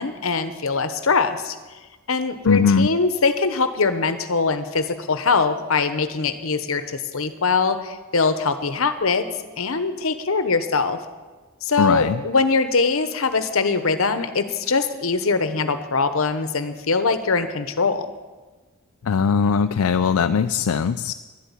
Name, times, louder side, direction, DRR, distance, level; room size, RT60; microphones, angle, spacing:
voice 1, 0.0-1.6 2.1-9.3 9.6-11.0 11.6-18.1, left 4 dB, 70° left, 11 dB, 1.0 m, -22 dB
voice 2, 2.5-2.9 11.8-12.2 19.0-21.1, left 6 dB, 90° left, 10 dB, 0.4 m, -20 dB
11.5 x 8.1 x 10.0 m, 1.3 s
head